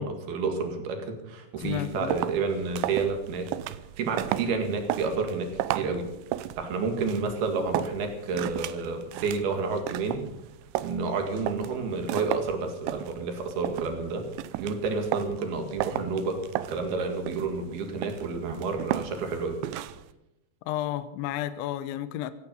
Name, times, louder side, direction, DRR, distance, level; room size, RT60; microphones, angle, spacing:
voice 1, 0.0-3.5 4.0-6.1 6.6-10.3 10.8-14.3 14.6-19.6, right 4 dB, 55° right, 5 dB, 3.5 m, -30 dB
voice 2, 1.6-2.2 20.7-22.3, left 12 dB, 80° left, 13 dB, 2.9 m, -32 dB
sound 1, 1.6-20.1, right 14 dB, 90° right, 2.6 m, -35 dB
17.0 x 15.5 x 5.4 m, 0.89 s
omnidirectional pair, 6.0 m